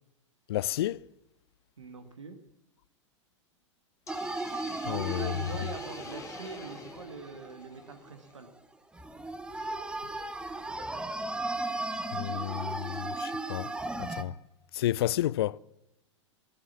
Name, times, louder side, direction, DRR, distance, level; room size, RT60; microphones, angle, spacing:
voice 1, 0.5-1.0 4.8-5.3 12.1-13.7 14.0-14.3 14.7-15.6, left 14 dB, 55° left, 0.5 m, -31 dB
voice 2, 1.8-2.4 4.9-8.5, right 4 dB, 75° right, 1.7 m, -43 dB
Hiss, 4.1-8.3, left 6 dB, 20° left, 1.6 m, -49 dB
sound 1, 4.1-8.1 8.5-8.6 8.9-14.2, right 2 dB, 5° right, 1.1 m, -36 dB
17.0 x 10.5 x 7.3 m
figure-of-eight pair, 95°, 16 cm